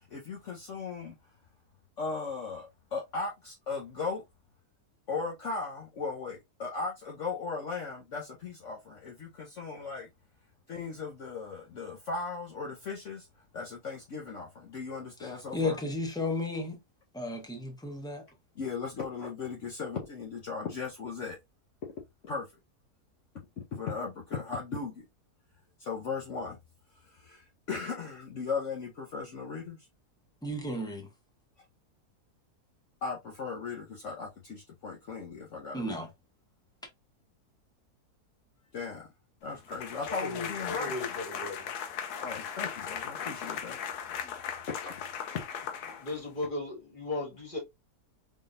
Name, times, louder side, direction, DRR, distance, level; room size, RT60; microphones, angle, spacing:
voice 1, 0.1-1.1 2.0-4.2 5.1-10.1 10.7-13.3 13.5-15.8 18.6-21.4 22.2-22.5 23.7-25.0 25.8-26.6 27.1-29.8 33.0-36.1 38.7-39.1 39.4-41.0 42.2-43.8 44.4-44.9, left 4 dB, 55° left, 1.0 m, -37 dB
voice 2, 15.2-16.8 17.1-18.2 30.4-31.1 35.7-36.1, left 2 dB, 5° left, 0.3 m, -33 dB
sound 1, 39.7-46.4, left 8 dB, 75° left, 1.2 m, -38 dB
voice 3, 40.0-41.7 46.0-47.6, left 2 dB, 30° left, 2.1 m, -37 dB
3.7 x 3.4 x 2.5 m
omnidirectional pair, 1.7 m